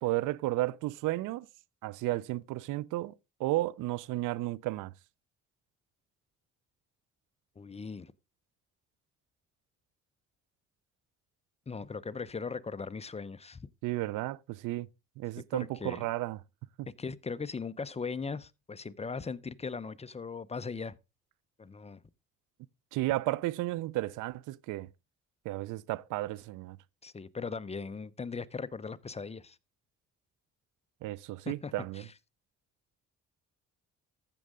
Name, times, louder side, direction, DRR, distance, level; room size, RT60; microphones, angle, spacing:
voice 1, 0.0-1.5 1.8-3.1 3.4-4.9 13.8-14.9 15.2-16.4 16.8-16.9 22.9-24.9 25.4-26.8 31.0-32.0, right 17 dB, 90° right, 0.5 m, -33 dB
voice 2, 7.6-8.1 11.7-13.7 15.5-16.1 17.0-20.9 21.6-22.0 27.0-29.6 31.5-32.1, left 5 dB, 20° left, 0.6 m, -39 dB
14.5 x 6.4 x 3.6 m
cardioid pair, 90°, 30 cm